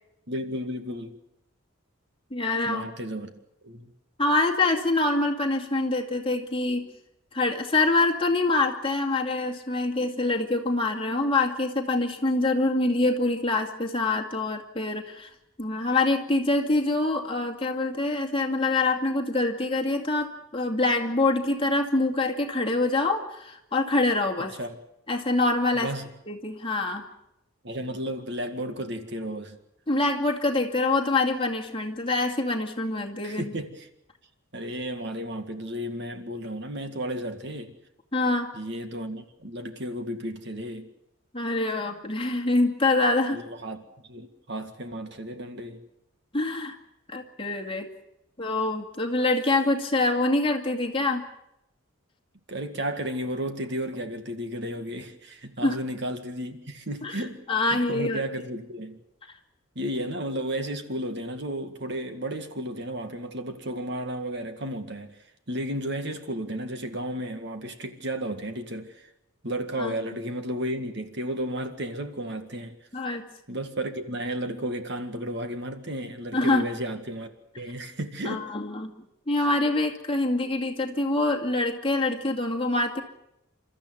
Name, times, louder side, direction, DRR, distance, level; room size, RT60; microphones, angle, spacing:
voice 1, 0.3-1.2 2.7-3.3 3.6-3.9 24.6-24.8 25.7-26.1 27.6-29.6 33.2-33.9 34.5-37.7 38.5-40.9 43.3-45.8 52.5-57.4 57.7-59.0 59.8-65.1 65.5-69.1 69.4-72.8 73.5-78.4, equal, 55° right, 2.0 m, -33 dB
voice 2, 2.3-2.9 4.2-6.9 7.3-15.3 15.6-24.6 25.1-25.9 26.3-27.0 29.9-33.5 38.1-38.5 41.3-43.4 46.3-46.8 47.1-47.9 48.4-51.2 55.6-55.8 57.0-57.2 57.5-58.2 69.8-69.9 72.9-73.3 76.3-76.7 78.3-78.9 79.3-83.0, left 2 dB, 25° left, 2.3 m, -25 dB
29.0 x 13.5 x 9.3 m
head